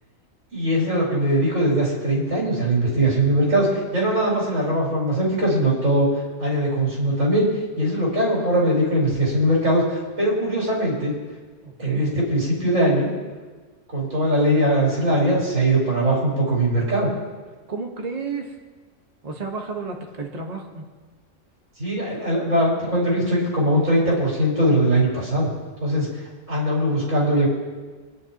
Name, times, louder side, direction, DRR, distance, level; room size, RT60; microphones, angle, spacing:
voice 1, 0.5-6.1 6.4-7.5 7.8-11.1 11.8-13.1 13.9-17.1 21.8-25.5 25.8-26.1 26.5-27.5, right 1 dB, 70° right, -5 dB, 5.2 m, -21 dB
voice 2, 11.6-12.0 17.7-18.5 19.2-20.8, right 4 dB, 30° right, 1 dB, 1.4 m, -32 dB
25.5 x 10.5 x 3.0 m, 1.4 s
omnidirectional pair, 1.4 m